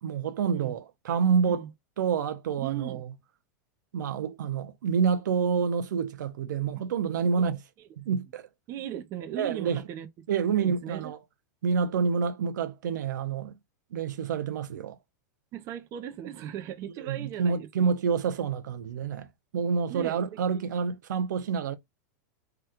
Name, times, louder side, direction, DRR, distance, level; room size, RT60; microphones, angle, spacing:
voice 1, 0.0-1.6 2.0-3.1 3.9-7.6 8.0-8.5 9.4-9.8 10.3-11.2 11.6-13.5 13.9-15.0 17.0-19.3 19.5-21.8, right 6 dB, 90° right, 0.5 m, -28 dB
voice 2, 2.6-3.0 7.4-7.5 7.8-7.9 8.7-10.1 10.6-11.1 15.5-17.7 19.9-20.2 20.5-20.6, right 10 dB, 30° right, 0.5 m, -37 dB
2.9 x 2.2 x 3.4 m
supercardioid pair, 150°, 10 cm